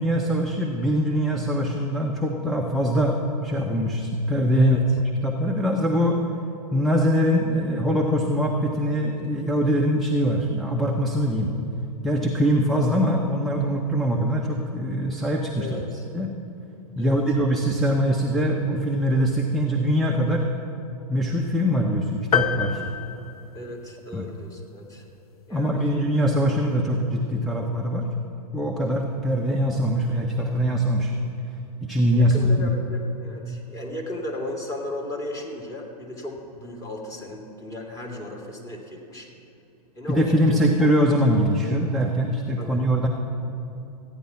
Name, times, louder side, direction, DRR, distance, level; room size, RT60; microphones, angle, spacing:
voice 1, 0.0-4.8 5.2-6.2 6.7-11.5 12.0-15.8 16.1-16.3 17.0-20.5 21.1-22.8 24.1-24.3 25.5-28.1 28.5-31.1 31.8-32.7 40.1-43.1, equal, ahead, -1 dB, 0.8 m, -22 dB
voice 2, 15.6-16.0 17.0-17.2 23.5-25.0 25.5-26.0 32.2-39.3 39.9-40.9 42.6-42.8, left 1 dB, 15° left, -1 dB, 2.3 m, -36 dB
sound 1, 22.3-24.1, left 8 dB, 75° left, 1.0 m, -27 dB
14.5 x 9.6 x 5.7 m, 2.8 s
hypercardioid pair, 110°, 20 cm